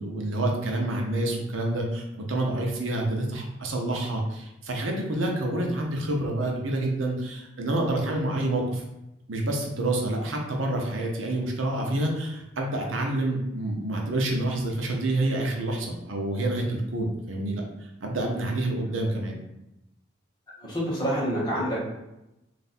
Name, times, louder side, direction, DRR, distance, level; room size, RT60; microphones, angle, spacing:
voice 1, 0.0-8.8 9.3-19.4, right 1 dB, 80° right, 1 dB, 0.8 m, -28 dB
voice 2, 20.6-22.0, equal, 20° left, -6 dB, 1.2 m, -27 dB
3.4 x 2.6 x 4.2 m, 0.92 s
head